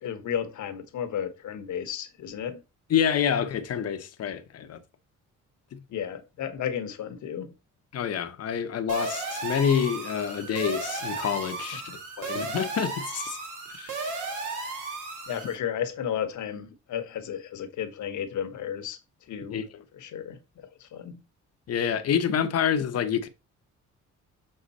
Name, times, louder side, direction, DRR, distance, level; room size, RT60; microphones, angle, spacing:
voice 1, 0.0-2.6 5.9-7.5 11.6-11.7 15.3-19.0 19.3-19.6 19.9-20.4 20.8-21.2, left 9 dB, 70° left, 1.2 m, -33 dB
voice 2, 2.9-4.8 5.7-5.8 7.9-11.8 12.2-13.4 13.7-14.1 19.5-19.6 21.7-23.3, left 8 dB, 55° left, 1.0 m, -27 dB
sound 1, 8.9-15.6, right 3 dB, 85° right, 1.8 m, -34 dB
6.8 x 3.8 x 4.1 m
cardioid pair, 90°, 30 cm